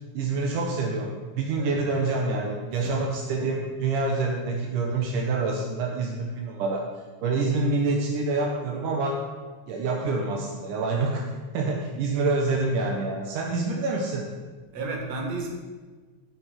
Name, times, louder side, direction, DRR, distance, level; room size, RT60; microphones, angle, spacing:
voice 1, 0.1-6.9 7.2-9.2 9.7-11.2 11.5-14.3, right 3 dB, 75° right, -1 dB, 1.9 m, -27 dB
voice 2, 2.7-3.1 11.9-12.0 14.7-15.5, right 2 dB, 50° right, 0 dB, 2.3 m, -33 dB
16.5 x 5.9 x 5.9 m, 1.3 s
omnidirectional pair, 5.4 m